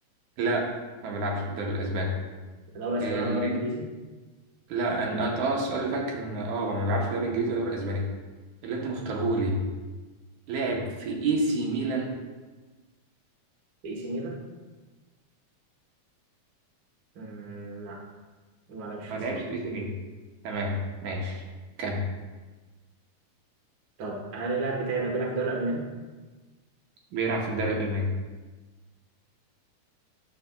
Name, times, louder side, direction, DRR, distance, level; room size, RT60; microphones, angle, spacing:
voice 1, 0.4-0.7 1.0-2.1 3.0-3.6 4.7-8.0 8.6-9.6 10.5-12.1 19.1-19.9 20.4-20.7 21.0-21.4 21.8-22.0 27.1-28.1, right 2 dB, 75° right, 0 dB, 2.3 m, -28 dB
voice 2, 2.7-3.9 13.8-14.4 17.1-18.0 18.7-19.4 24.0-25.8, right 2 dB, 55° right, -2 dB, 1.3 m, -31 dB
9.7 x 6.8 x 2.2 m, 1.3 s
omnidirectional pair, 3.6 m